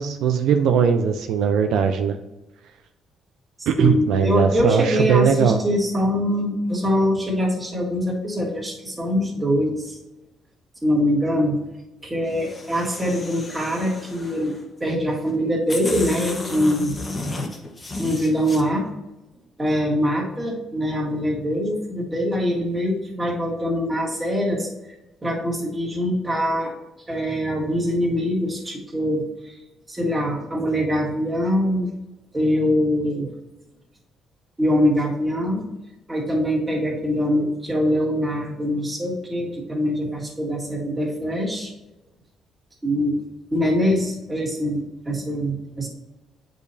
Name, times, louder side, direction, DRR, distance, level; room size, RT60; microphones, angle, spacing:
voice 1, 0.0-2.2 3.7-5.6, right 7 dB, 75° right, 6 dB, 0.5 m, -19 dB
voice 2, 3.6-10.0 10.8-11.6 12.0-14.5 14.8-16.9 18.0-18.8 19.6-24.7 25.2-26.7 27.1-29.6 29.9-31.9 32.3-33.3 34.6-35.7 36.1-41.7 42.8-43.2 43.5-45.9, equal, 15° right, -3 dB, 1.9 m, -23 dB
sound 1, 12.3-14.6 15.3-15.4 15.7-18.6, left 2 dB, 30° left, 1.2 m, -33 dB
8.4 x 5.2 x 2.7 m, 1.0 s
cardioid pair, 115°, 0 cm